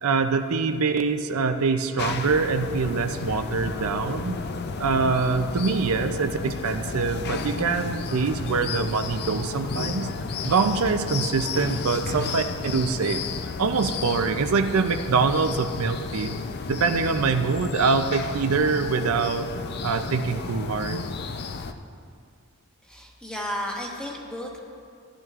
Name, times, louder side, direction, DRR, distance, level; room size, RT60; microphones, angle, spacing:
voice 1, 0.0-4.4 4.8-10.1 10.4-13.2 13.6-16.4 16.7-19.5 19.8-21.0, right 4 dB, 80° right, 8 dB, 0.5 m, -24 dB
sound 1, 2.0-21.7, left 4 dB, 50° left, 0.4 m, -32 dB
voice 2, 22.8-24.6, equal, 5° left, -1 dB, 1.1 m, -33 dB
15.0 x 10.5 x 2.4 m, 2.4 s
head